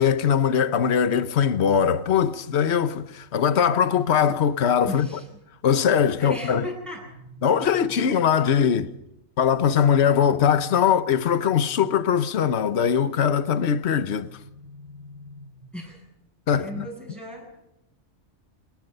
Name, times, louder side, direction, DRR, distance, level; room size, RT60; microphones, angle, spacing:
voice 1, 0.0-5.1 5.6-6.7 7.4-8.9 9.4-14.3 16.5-16.9, left 8 dB, 65° left, 1.2 m, -21 dB
voice 2, 4.9-5.3 6.2-7.1 15.7-16.0 16.5-17.6, equal, ahead, 7.9 m, -37 dB
sound 1, 6.6-8.6 10.3-12.4 14.0-16.0, left 1 dB, 65° right, 3.8 m, -47 dB
27.0 x 21.0 x 5.5 m
omnidirectional pair, 1.2 m